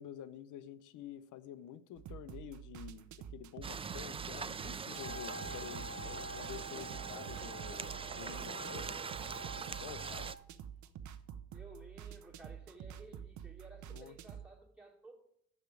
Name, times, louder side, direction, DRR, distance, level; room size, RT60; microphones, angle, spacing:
voice 1, 0.0-9.0 9.6-10.4 13.9-14.2, left 10 dB, 80° left, 0.7 m, -49 dB
sound 1, 2.0-14.5, right 9 dB, 70° right, 0.7 m, -49 dB
sound 2, 3.6-10.3, right 5 dB, 20° right, 0.3 m, -43 dB
Wind instrument woodwind instrument, 4.8-10.5, right 1 dB, 25° left, 1.1 m, -48 dB
voice 2, 11.5-15.2, right 2 dB, 5° right, 2.7 m, -55 dB
6.6 x 6.6 x 7.5 m
cardioid pair, 90°, 30 cm